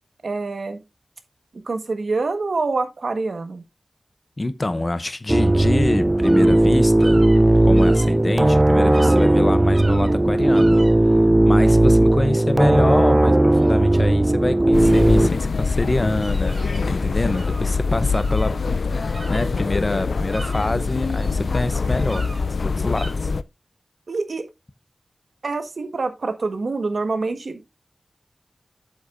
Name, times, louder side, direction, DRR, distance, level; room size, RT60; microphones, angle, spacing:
voice 1, 0.2-0.8 1.5-3.6 24.1-24.5 25.4-27.7, right 3 dB, 70° right, 1.3 m, -26 dB
voice 2, 4.4-7.3 7.6-10.8 11.0-11.1 11.4-18.6 18.9-22.3 22.6-23.3, left 2 dB, 35° left, 0.7 m, -26 dB
sound 1, 5.3-15.3, right 1 dB, 25° right, 0.4 m, -16 dB
sound 2, 6.2-6.6 7.0-8.2 8.6-8.7 8.9-9.3 9.7-10.2 10.5-10.9 13.6-13.7 14.0-14.1 14.8-15.1 15.8-16.9 17.3-17.7 18.1-19.8 20.1-21.4 21.8-22.4 22.9-23.1, right 2 dB, 50° right, 2.2 m, -39 dB
sound 3, 14.7-23.4, left 4 dB, 80° left, 0.4 m, -24 dB
8.1 x 7.8 x 2.6 m
wide cardioid pair, 90°, 0 cm